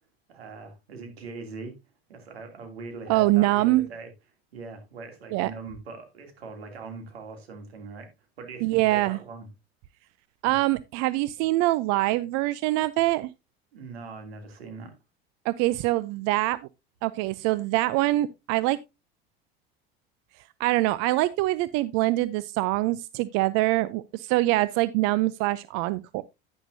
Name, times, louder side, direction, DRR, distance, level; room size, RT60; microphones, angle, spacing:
voice 1, 0.3-1.8 2.1-4.1 4.5-8.1 8.4-9.5 10.4-10.5 13.7-14.9, right 4 dB, 85° right, 2.8 m, -41 dB
voice 2, 3.1-3.9 5.3-5.5 8.6-9.2 10.4-13.3 15.4-16.6 17.0-18.8 20.6-26.2, right 18 dB, 60° right, 0.6 m, -24 dB
10.0 x 10.0 x 2.7 m
hypercardioid pair, 80°, 30 cm